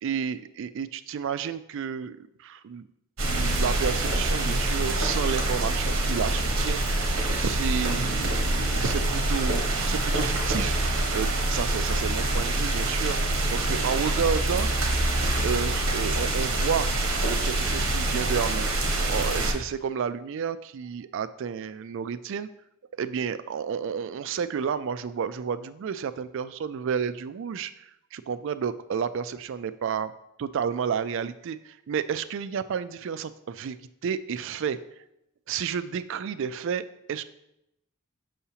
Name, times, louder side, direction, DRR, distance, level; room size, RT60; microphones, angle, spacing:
voice 1, 0.0-2.9 3.3-14.7 15.4-16.9 17.2-18.7 19.1-22.5 23.0-30.1 30.4-33.8 34.0-34.8 35.5-37.2, right 7 dB, 65° right, 13 dB, 0.3 m, -31 dB
sound 1, 3.2-19.5, right 2 dB, 80° right, 1.0 m, -25 dB
6.9 x 5.7 x 2.8 m, 0.82 s
head